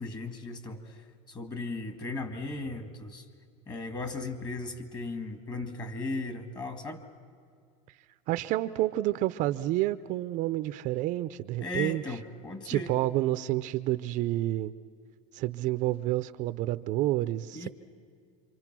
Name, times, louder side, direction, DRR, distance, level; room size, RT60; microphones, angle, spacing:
voice 1, 0.0-3.3 3.7-7.0 11.6-12.9 17.5-17.7, left 3 dB, 25° left, 8 dB, 2.0 m, -37 dB
voice 2, 8.3-12.0 12.6-14.7 15.3-17.7, right 15 dB, 50° right, 13 dB, 0.6 m, -29 dB
27.5 x 24.5 x 6.1 m, 2.3 s
supercardioid pair, 135°, 17 cm